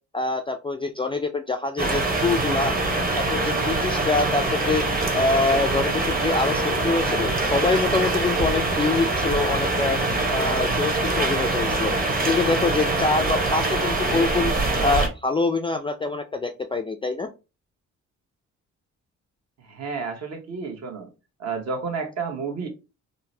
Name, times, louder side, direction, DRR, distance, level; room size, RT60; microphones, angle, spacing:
voice 1, 0.1-2.8 3.1-4.8 5.1-10.0 10.3-11.9 12.3-14.5 14.8-17.3, left 3 dB, 20° left, 7 dB, 0.3 m, -25 dB
sound 1, 1.8-15.1, right 2 dB, 30° right, 1.0 m, -24 dB
voice 2, 19.6-21.1 21.4-22.7, right 5 dB, 60° right, 3 dB, 1.2 m, -31 dB
3.8 x 2.1 x 2.6 m, 0.28 s
cardioid pair, 90°, 30 cm